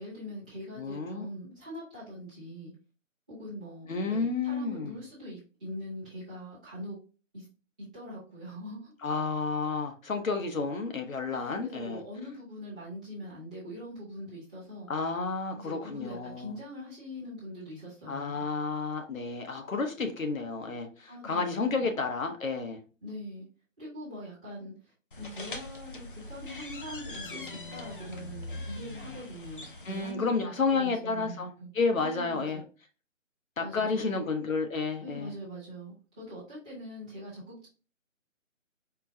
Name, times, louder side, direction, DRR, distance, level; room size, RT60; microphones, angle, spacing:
voice 1, 0.0-2.7 3.3-7.0 7.3-7.5 7.9-8.9 11.3-14.9 15.6-18.4 21.1-21.9 23.0-23.5 23.8-31.7 32.0-32.6 33.6-34.2 35.0-37.7, equal, 5° right, 0.6 m, -42 dB
voice 2, 0.8-1.2 3.9-5.0 9.0-12.0 14.9-16.5 18.1-22.8 29.8-31.5 31.8-32.6 33.6-35.3, left 4 dB, 85° left, 1.0 m, -31 dB
sound 1, 25.1-30.1, left 2 dB, 40° left, 0.5 m, -42 dB
4.4 x 2.1 x 2.7 m
figure-of-eight pair, 160°, 39 cm